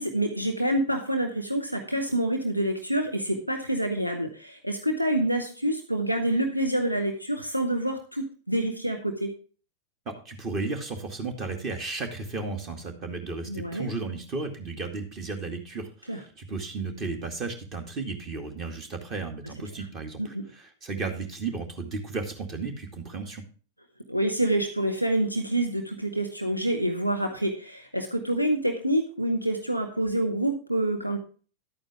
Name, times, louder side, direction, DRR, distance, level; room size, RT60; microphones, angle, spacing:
voice 1, 0.0-9.3 13.4-13.9 16.1-16.2 20.2-20.4 24.1-31.2, right 1 dB, 90° right, 4 dB, 1.2 m, -27 dB
voice 2, 10.1-23.4, right 3 dB, 35° right, 5 dB, 2.2 m, -34 dB
11.5 x 8.8 x 3.5 m, 0.38 s
figure-of-eight pair, 90°, 0 cm